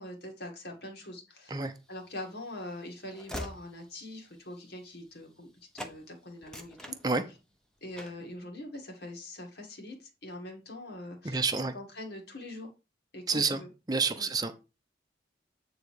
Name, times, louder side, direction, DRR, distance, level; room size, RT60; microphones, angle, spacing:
voice 1, 0.0-1.6 1.9-7.0 7.8-11.4 11.7-12.7 13.1-13.7 14.2-14.3, left 1 dB, 60° left, 2.2 m, -43 dB
Train / Slam, 1.9-5.5 5.8-6.0 6.4-7.6 8.0-8.3, equal, 5° left, 0.9 m, -45 dB
voice 2, 11.2-11.7 13.3-13.6 13.9-14.5, right 4 dB, 20° right, 0.8 m, -28 dB
9.0 x 4.0 x 4.8 m
head